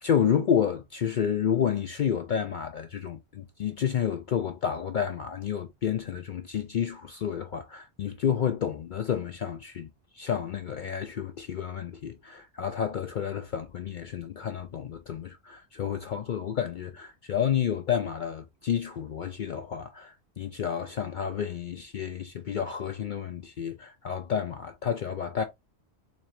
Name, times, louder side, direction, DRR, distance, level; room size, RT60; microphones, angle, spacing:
voice 1, 0.0-25.4, left 8 dB, 60° left, 0.5 m, -30 dB
4.1 x 2.7 x 3.1 m
omnidirectional pair, 1.2 m